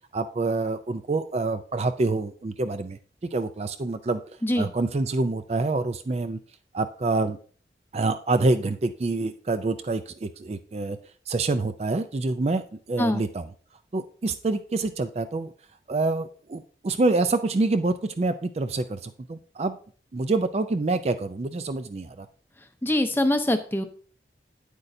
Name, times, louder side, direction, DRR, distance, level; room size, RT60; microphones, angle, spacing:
voice 1, 0.1-4.2 4.6-6.4 6.7-7.4 7.9-11.0 11.3-12.6 12.9-13.5 13.9-15.5 15.9-19.8 20.1-22.3, right 3 dB, 35° right, 10 dB, 0.4 m, -26 dB
voice 2, 22.8-23.8, left 1 dB, 10° left, 8 dB, 0.6 m, -23 dB
8.8 x 8.1 x 2.7 m, 0.43 s
head